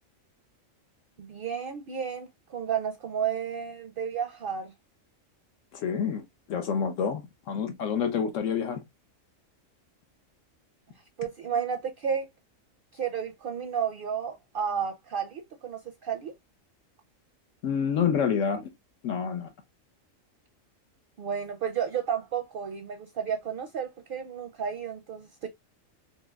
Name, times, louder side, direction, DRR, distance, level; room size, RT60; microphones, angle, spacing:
voice 1, 1.2-4.7 11.2-12.3 12.9-16.3 21.2-25.5, right 7 dB, 55° right, 0.6 m, -32 dB
voice 2, 5.7-8.8 17.6-18.7 19.0-19.5, left 7 dB, 75° left, 1.0 m, -28 dB
4.2 x 2.9 x 2.3 m
omnidirectional pair, 1.4 m